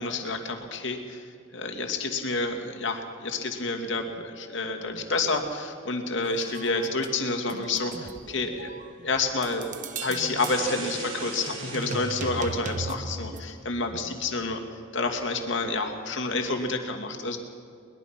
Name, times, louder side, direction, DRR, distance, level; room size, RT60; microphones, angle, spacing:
voice 1, 0.0-8.7 9.0-14.6 14.9-17.4, left 3 dB, 65° left, 4 dB, 2.5 m, -29 dB
sound 1, 6.2-13.4, right 3 dB, 40° right, 1.1 m, -38 dB
sound 2, 10.4-12.8, right 3 dB, 80° right, 4.2 m, -39 dB
22.0 x 21.0 x 6.0 m, 2.3 s
head